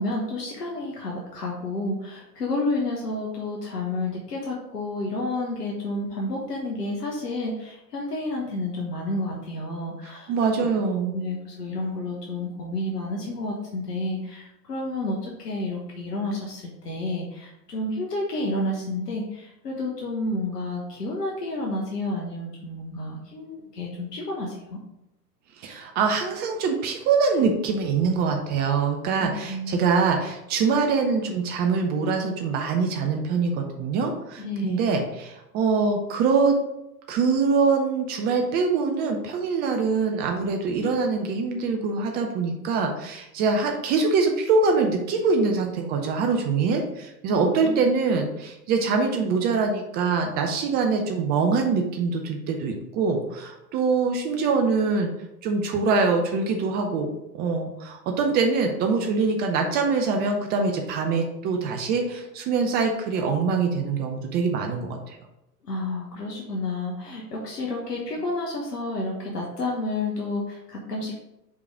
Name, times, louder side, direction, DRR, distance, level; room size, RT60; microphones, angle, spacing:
voice 1, 0.0-10.3 11.1-24.8 29.2-29.9 34.4-34.8 47.3-47.7 65.6-71.1, left 2 dB, 70° left, -1 dB, 1.3 m, -30 dB
voice 2, 10.3-11.2 25.6-36.6 37.1-55.1 55.4-57.1 57.3-65.2, right 4 dB, 20° right, 4 dB, 0.5 m, -24 dB
5.2 x 4.7 x 4.8 m, 0.89 s
figure-of-eight pair, 95°, 49 cm